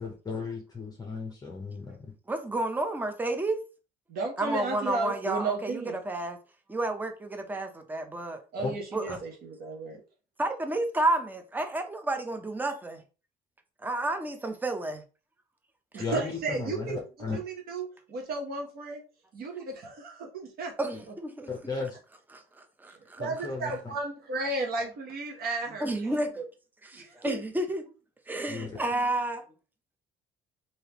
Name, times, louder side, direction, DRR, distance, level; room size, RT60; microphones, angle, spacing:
voice 1, 0.0-2.1 8.6-8.7 9.1-9.2 16.0-17.4 21.5-22.0 23.2-23.9 28.5-28.8, left 4 dB, 25° left, 0.7 m, -35 dB
voice 2, 2.3-3.6 4.4-6.4 6.7-8.4 8.9-9.2 10.4-13.0 13.8-15.0 20.8-21.5 22.3-23.2 25.8-26.5 26.8-27.9 28.3-29.4, right 2 dB, 10° right, 0.6 m, -31 dB
voice 3, 4.1-6.0 8.5-10.0 15.9-17.0 17.3-19.0 19.3-20.7 23.2-26.2 26.9-27.4, right 3 dB, 65° right, 1.0 m, -34 dB
3.4 x 2.8 x 2.9 m
cardioid pair, 110°, 17 cm